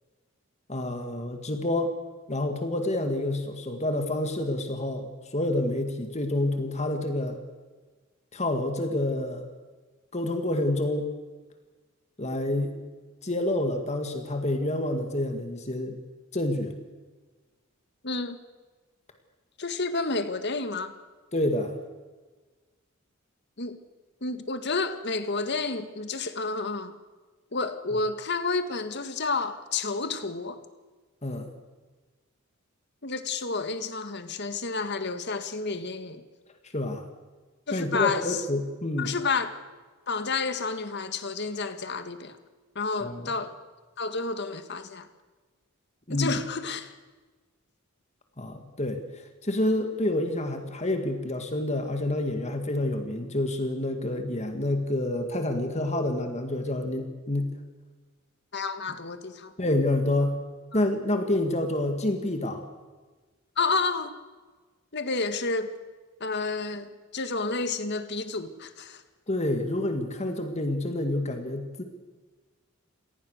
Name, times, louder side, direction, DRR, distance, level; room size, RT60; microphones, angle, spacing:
voice 1, 0.7-1.9 2.3-7.4 8.3-9.5 10.1-11.1 12.2-12.7 13.2-16.0 16.3-16.7 21.3-21.8 31.2-31.5 36.7-37.0 37.7-39.1 43.0-43.2 46.1-46.3 48.4-49.0 49.4-57.5 59.6-60.4 60.7-62.7 69.3-71.8, left 1 dB, 30° left, 6 dB, 2.1 m, -28 dB
voice 2, 18.0-18.4 19.6-20.9 23.6-23.8 24.2-26.9 27.5-30.6 33.0-36.2 37.7-38.4 39.0-39.5 40.1-42.4 42.7-43.5 44.0-45.1 46.1-46.9 58.5-59.5 60.7-60.8 63.6-64.1 64.9-65.7 66.2-69.0, left 4 dB, 55° left, 9 dB, 1.8 m, -30 dB
27.0 x 18.5 x 6.6 m, 1.3 s
head